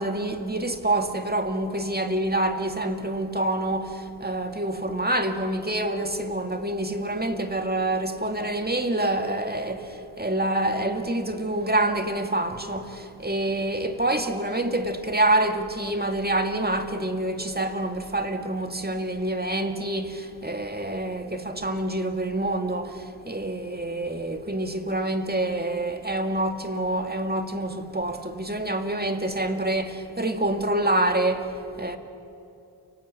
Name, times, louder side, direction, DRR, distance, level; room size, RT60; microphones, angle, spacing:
voice 1, 0.0-32.0, right 1 dB, 25° right, 2.0 m, -27 dB
29.0 x 18.5 x 8.3 m
wide cardioid pair, 45°, 41 cm